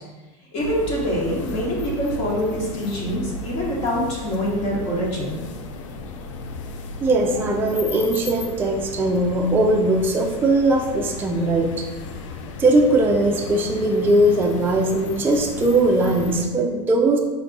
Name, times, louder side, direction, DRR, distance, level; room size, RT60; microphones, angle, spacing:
voice 1, 0.5-5.4, equal, 45° left, -4 dB, 1.1 m, -25 dB
sound 1, 0.6-16.5, left 3 dB, 90° left, 0.4 m, -35 dB
voice 2, 7.0-11.9 12.6-17.2, right 2 dB, 15° right, 1 dB, 0.3 m, -20 dB
4.7 x 2.2 x 3.8 m, 1.2 s
supercardioid pair, 130°, 16 cm